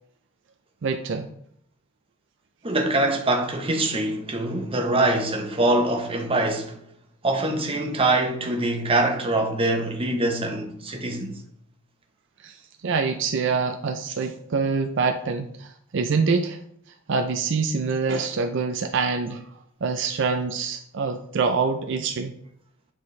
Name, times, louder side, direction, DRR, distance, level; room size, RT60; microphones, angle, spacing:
voice 1, 0.8-1.3 12.4-16.6 17.1-19.5 19.8-22.3, right 4 dB, 65° right, 0.5 m, -25 dB
voice 2, 2.6-6.8 7.2-11.4, right 2 dB, 30° right, 1.0 m, -24 dB
9.2 x 4.3 x 3.2 m
head